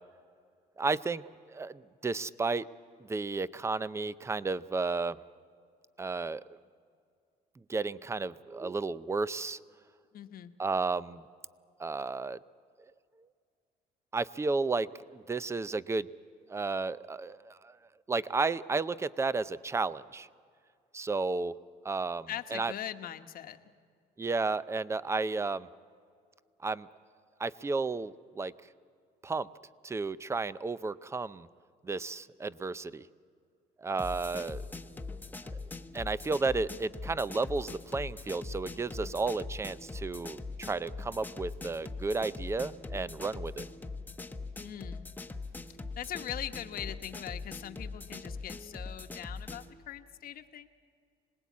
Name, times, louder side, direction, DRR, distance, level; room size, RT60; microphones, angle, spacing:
voice 1, 0.8-1.2 1.5-2.7 3.0-5.2 6.0-6.4 7.7-9.6 10.6-11.2 11.8-12.4 14.1-16.1 16.5-17.8 18.1-20.3 20.9-21.6 21.8-22.7 24.2-25.7 26.6-26.9 27.4-28.5 29.2-29.5 29.8-31.5 31.8-33.1 33.8-35.1 35.9-43.7, right 3 dB, 15° right, 17 dB, 0.5 m, -33 dB
voice 2, 10.1-10.5 22.3-23.6 44.6-45.1 46.0-50.7, left 11 dB, 60° left, 8 dB, 1.1 m, -41 dB
sound 1, 34.0-49.7, left 3 dB, 10° left, 0.9 m, -42 dB
26.0 x 19.5 x 8.4 m, 2.2 s
cardioid pair, 110°, 17 cm